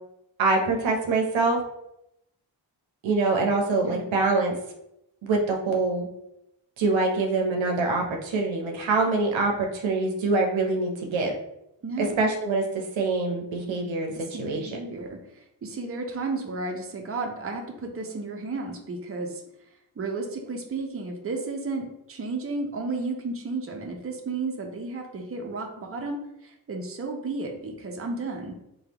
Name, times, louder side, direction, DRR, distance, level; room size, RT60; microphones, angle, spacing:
voice 1, 0.4-1.6 3.0-4.6 5.2-6.1 6.8-11.3 12.0-14.8, right 3 dB, 80° right, 1 dB, 0.7 m, -25 dB
voice 2, 11.8-12.3 14.1-19.4 20.0-28.5, right 3 dB, 30° right, 2 dB, 0.6 m, -33 dB
3.4 x 2.3 x 2.9 m, 0.82 s
cardioid pair, 45°, 46 cm